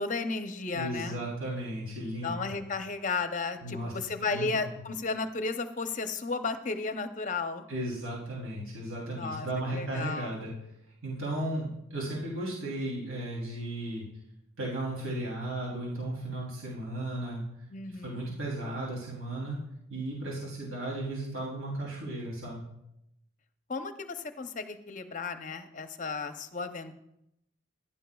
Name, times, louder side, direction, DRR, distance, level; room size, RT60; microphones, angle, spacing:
voice 1, 0.0-1.2 2.2-7.6 9.1-10.3 17.7-18.2 23.7-27.0, left 4 dB, 35° left, 8 dB, 0.6 m, -34 dB
voice 2, 0.7-2.6 3.6-3.9 4.2-4.8 7.7-10.5 11.0-14.0 14.6-17.4 17.9-19.6 19.9-22.7, right 1 dB, 75° right, -5 dB, 3.2 m, -35 dB
15.0 x 11.0 x 2.3 m, 0.80 s
head